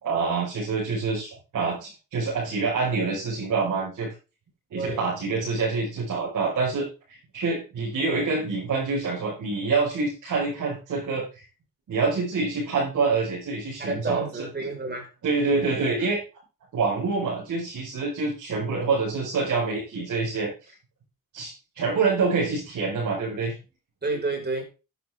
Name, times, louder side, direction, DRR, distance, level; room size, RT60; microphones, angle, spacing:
voice 1, 0.0-4.1 4.7-11.4 11.9-14.3 15.2-16.2 16.7-20.7 21.3-23.5, right 4 dB, 65° right, 5.4 m, -26 dB
voice 2, 4.7-5.1 13.8-15.1 24.0-24.6, right 3 dB, 30° right, 5.4 m, -30 dB
11.0 x 10.5 x 3.7 m
cardioid pair, 80°, 32 cm